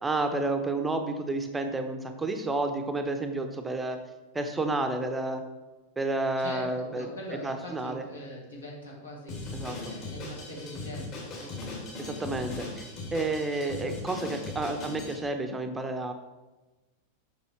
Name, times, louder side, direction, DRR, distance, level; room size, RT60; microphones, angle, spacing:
voice 1, 0.0-4.0 4.3-5.4 6.0-7.1 7.4-8.0 9.5-9.9 12.0-16.1, right 2 dB, 10° right, 6 dB, 0.7 m, -30 dB
voice 2, 6.4-11.6, equal, 70° left, -3 dB, 2.4 m, -42 dB
Drum kit, 9.3-15.2, left 3 dB, 40° left, 2.6 m, -39 dB
7.0 x 6.1 x 4.3 m, 1.1 s
figure-of-eight pair, 90°, 0 cm